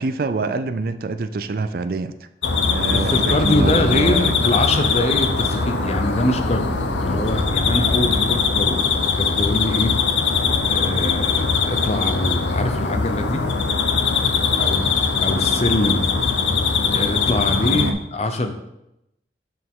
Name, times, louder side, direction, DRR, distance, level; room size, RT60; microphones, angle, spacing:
voice 1, 0.0-2.1 2.6-4.3 14.5-14.8 17.7-18.0, right 3 dB, 55° right, 11 dB, 0.4 m, -26 dB
sound 1, 2.4-17.9, left 5 dB, 90° left, 0.7 m, -21 dB
voice 2, 2.9-10.0 10.7-13.4 14.6-14.8 15.2-16.0 16.9-18.5, left 1 dB, 35° left, 7 dB, 0.7 m, -24 dB
sound 2, 3.0-11.1, right 1 dB, 40° right, 1.6 m, -31 dB
6.7 x 6.4 x 3.7 m, 0.85 s
head